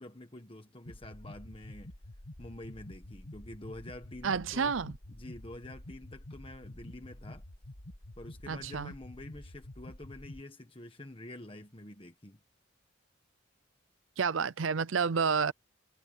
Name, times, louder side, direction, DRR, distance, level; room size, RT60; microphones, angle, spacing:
voice 1, 0.0-1.9 2.4-4.7 5.1-7.4 8.2-12.4, left 1 dB, 25° left, 1.4 m, -47 dB
sound 1, 0.9-10.4, left 1 dB, 65° left, 2.2 m, -48 dB
voice 2, 4.2-4.9 8.5-8.9 14.2-15.5, right 5 dB, 85° right, 0.6 m, -29 dB
head